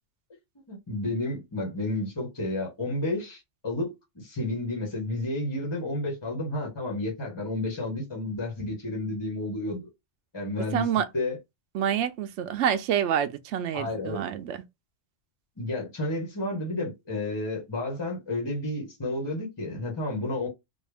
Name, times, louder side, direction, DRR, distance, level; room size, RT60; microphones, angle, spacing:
voice 1, 0.7-9.9 10.3-10.9 11.1-11.4 13.7-14.2 15.6-20.5, left 2 dB, 20° left, 1.2 m, -31 dB
voice 2, 10.7-11.0 11.7-14.6, right 9 dB, 75° right, 0.9 m, -27 dB
3.5 x 2.3 x 3.4 m
omnidirectional pair, 1.3 m